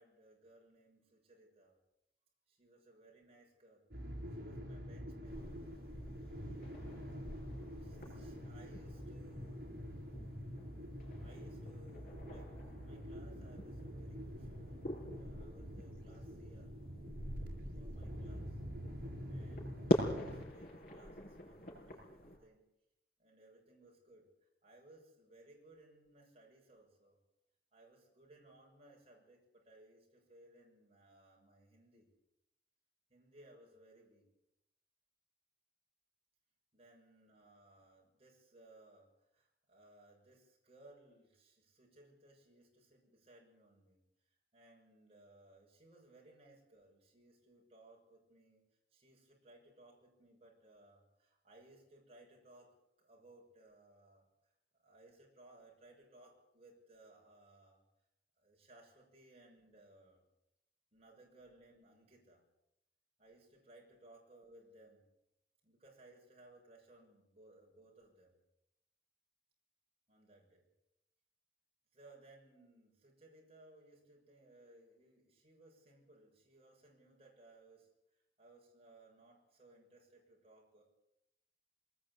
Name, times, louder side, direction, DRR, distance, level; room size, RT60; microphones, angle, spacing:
voice 1, 0.0-1.8 2.5-3.9 4.3-5.7 7.8-9.7 11.2-16.7 17.8-18.6 19.0-22.6 23.2-27.2 27.7-32.1 33.1-34.3 36.7-44.0 44.3-48.6 48.9-54.2 54.8-57.8 58.4-60.2 60.9-62.4 63.2-65.1 65.6-68.3 70.1-70.7 71.9-77.9 78.4-80.8, right 2 dB, 35° right, -1 dB, 7.1 m, -63 dB
sound 1, 3.9-20.5, equal, 55° right, 6.9 m, -46 dB
sound 2, 5.3-22.4, equal, 55° left, 6.6 m, -44 dB
22.5 x 20.0 x 8.6 m, 0.85 s
head